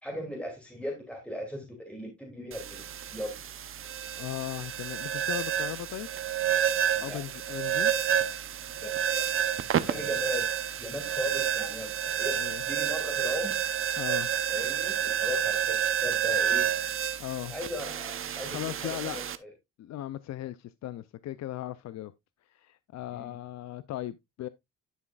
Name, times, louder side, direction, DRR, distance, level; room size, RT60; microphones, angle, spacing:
voice 1, 0.0-2.8 3.1-3.4 7.0-7.2 8.7-9.3 9.9-10.5 10.8-13.6 14.5-16.7 17.4-19.5 23.1-23.4, equal, 5° left, 2.6 m, -37 dB
sound 1, 2.5-19.4, right 9 dB, 45° right, 0.7 m, -30 dB
voice 2, 4.2-6.1 7.0-7.9 9.8-10.1 12.3-12.6 13.9-14.3 17.2-17.5 18.5-19.2 19.8-22.1 22.5-24.5, left 13 dB, 60° left, 0.5 m, -37 dB
11.0 x 6.1 x 2.3 m
cardioid pair, 90°, 30 cm